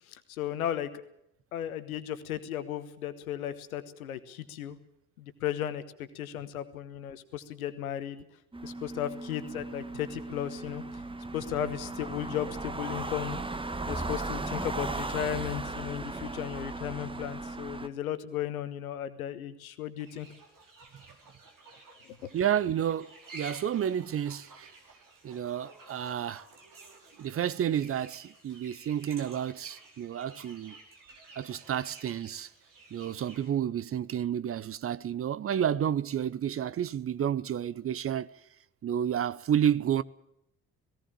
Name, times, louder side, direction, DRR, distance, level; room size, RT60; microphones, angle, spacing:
voice 1, 0.1-1.0 1.5-4.8 5.2-8.2 8.6-10.8 11.3-13.4 13.9-20.3 22.2-22.3, left 10 dB, 75° left, 1.3 m, -35 dB
sound 1, 8.5-17.9, right 2 dB, 10° right, 1.3 m, -37 dB
sound 2, 20.0-33.5, right 3 dB, 50° right, 5.1 m, -52 dB
voice 2, 22.3-24.7 25.2-26.4 27.2-30.7 31.4-32.5 32.9-38.3 38.8-40.0, right 9 dB, 30° right, 0.7 m, -30 dB
18.0 x 17.0 x 8.9 m
figure-of-eight pair, 50°, 43 cm